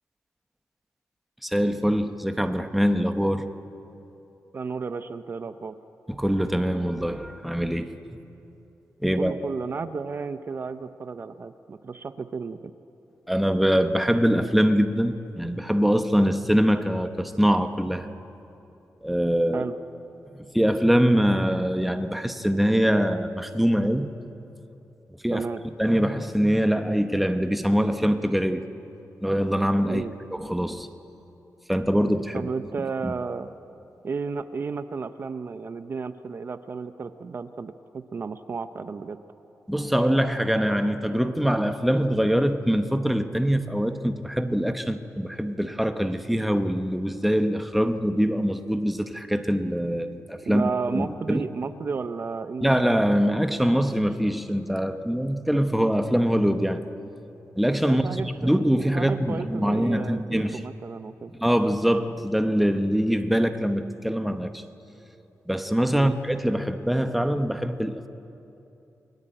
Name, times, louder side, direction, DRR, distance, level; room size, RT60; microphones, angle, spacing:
voice 1, 1.4-3.5 6.1-8.0 9.0-9.3 13.3-18.1 19.0-19.6 20.3-24.1 25.2-25.4 25.8-28.7 29.2-30.0 30.3-30.9 31.7-32.5 33.0-33.1 39.7-51.5 52.6-56.8 57.6-60.6 61.4-64.6 65.5-68.1, equal, ahead, 7 dB, 1.0 m, -23 dB
voice 2, 4.5-5.8 9.2-12.7 19.5-19.8 25.3-25.6 29.9-30.1 32.3-33.5 34.0-39.2 50.5-52.8 57.8-58.6 58.9-61.3 65.9-66.1, right 5 dB, 40° right, 10 dB, 0.7 m, -33 dB
30.0 x 21.0 x 9.0 m, 2.9 s
wide cardioid pair, 180°, 6 cm